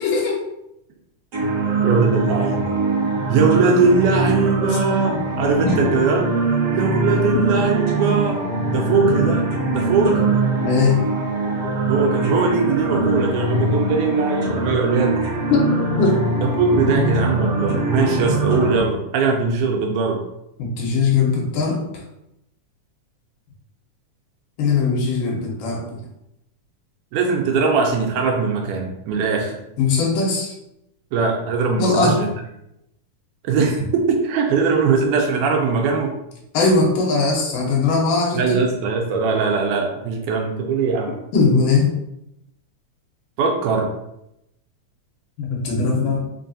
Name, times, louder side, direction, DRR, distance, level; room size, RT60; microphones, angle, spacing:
voice 1, 0.0-0.4 5.1-5.2 5.6-5.8 10.6-11.0 15.5-15.7 16.0-16.2 20.6-21.9 24.6-25.8 29.8-30.5 31.8-32.2 36.5-38.6 41.3-42.0 45.4-46.2, left 4 dB, 90° left, -1 dB, 2.4 m, -19 dB
sound 1, 1.3-18.8, right 2 dB, 65° right, 1.0 m, -22 dB
voice 2, 1.8-2.8 3.3-6.3 6.7-8.4 8.7-9.4 9.7-10.3 11.9-15.2 16.6-20.2 27.1-29.6 31.1-32.3 33.4-36.1 38.3-41.2 43.4-43.9, right 4 dB, 80° right, 1 dB, 2.0 m, -20 dB
5.2 x 2.3 x 2.6 m, 0.83 s
omnidirectional pair, 3.7 m